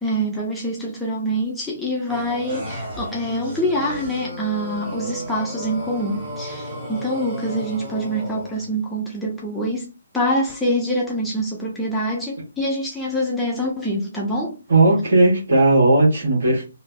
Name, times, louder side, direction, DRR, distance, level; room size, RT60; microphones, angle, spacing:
voice 1, 0.0-14.6, equal, 5° left, 0.4 m, -25 dB
sound 1, 2.1-8.7, equal, 20° right, 1.3 m, -34 dB
voice 2, 14.7-16.6, right 2 dB, 55° right, 1.3 m, -16 dB
3.0 x 2.0 x 2.2 m
figure-of-eight pair, 140°, 0 cm